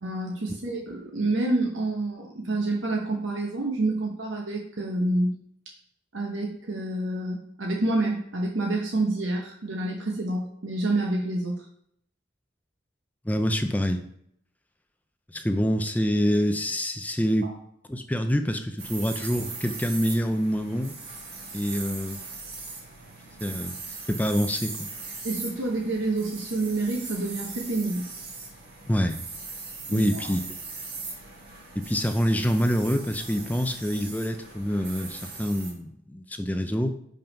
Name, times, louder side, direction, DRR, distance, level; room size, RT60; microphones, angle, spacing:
voice 1, 0.0-5.4 6.1-11.6 17.4-17.6 25.2-28.1 29.9-30.3, right 2 dB, 85° right, 0 dB, 1.0 m, -28 dB
voice 2, 13.3-14.0 15.3-17.5 17.9-20.9 21.5-22.2 23.4-23.7 24.1-24.9 28.9-29.2 29.9-30.5 31.7-37.0, equal, 10° left, 7 dB, 0.4 m, -26 dB
sound 1, 18.8-35.7, right 4 dB, 55° right, 2.4 m, -39 dB
5.6 x 5.3 x 5.2 m, 0.72 s
head